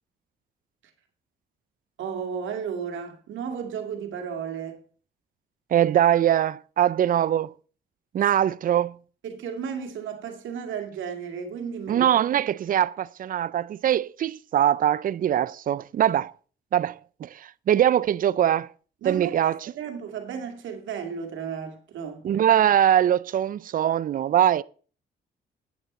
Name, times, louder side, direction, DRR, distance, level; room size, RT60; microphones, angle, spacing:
voice 1, 2.0-4.8 9.2-12.1 19.0-22.3, right 7 dB, 75° right, 2.2 m, -34 dB
voice 2, 5.7-7.5 8.1-9.0 11.9-16.3 16.7-18.7 19.0-19.7 22.2-24.6, right 10 dB, 45° right, 0.4 m, -22 dB
9.1 x 8.8 x 4.2 m
cardioid pair, 90°, 20 cm